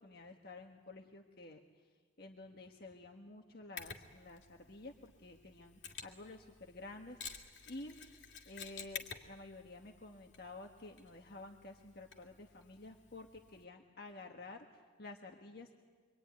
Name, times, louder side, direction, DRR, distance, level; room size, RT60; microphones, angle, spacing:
voice 1, 0.0-1.9 2.2-8.0 8.4-15.7, left 2 dB, 60° left, 2 dB, 1.6 m, -51 dB
Mechanisms, 3.8-13.6, left 6 dB, 80° left, 2.3 m, -52 dB
25.0 x 24.0 x 9.6 m, 1.5 s
head